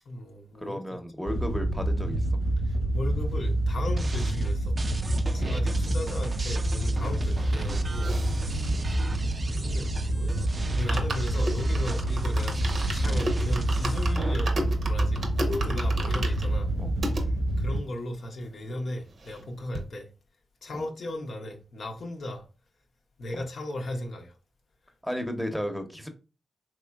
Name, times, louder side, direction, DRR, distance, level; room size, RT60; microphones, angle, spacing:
voice 1, 0.1-0.8 2.6-4.8 5.3-8.1 9.5-14.5 14.9-16.7 17.6-20.1 20.6-22.5 23.2-24.3, left 1 dB, 70° left, 0.6 m, -36 dB
voice 2, 0.6-2.3 5.6-6.3 8.6-9.1 16.8-16.9 20.7-20.8 23.3-23.4 25.0-26.1, equal, 5° left, 0.7 m, -35 dB
Wind / Boat Water vehicle, 1.3-17.8, right 1 dB, 90° right, 1.1 m, -27 dB
sound 1, 4.0-14.3, right 3 dB, 45° right, 0.4 m, -39 dB
sound 2, 7.2-10.0 10.4-10.5 10.7-17.2 17.8-17.9 18.1-18.2 18.5-19.5 19.7-19.9, right 1 dB, 65° right, 0.7 m, -36 dB
3.6 x 3.0 x 2.3 m
supercardioid pair, 45°, 0 cm